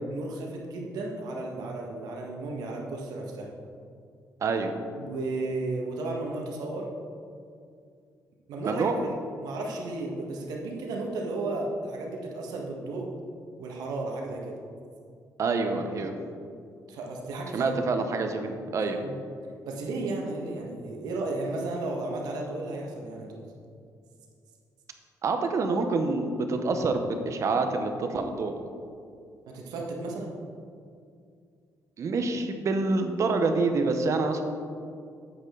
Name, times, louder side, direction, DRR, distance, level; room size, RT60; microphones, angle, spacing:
voice 1, 0.1-3.5 5.0-6.9 8.5-13.1 13.6-14.6 16.9-17.7 19.0-19.2 19.6-23.5 29.5-30.4, right 2 dB, 90° right, 0 dB, 1.5 m, -34 dB
voice 2, 4.4-4.7 8.6-8.9 15.4-16.1 17.5-19.0 25.2-28.6 32.0-34.4, right 3 dB, 50° right, 6 dB, 0.9 m, -27 dB
8.5 x 8.1 x 3.9 m, 2.3 s
cardioid pair, 120°, 7 cm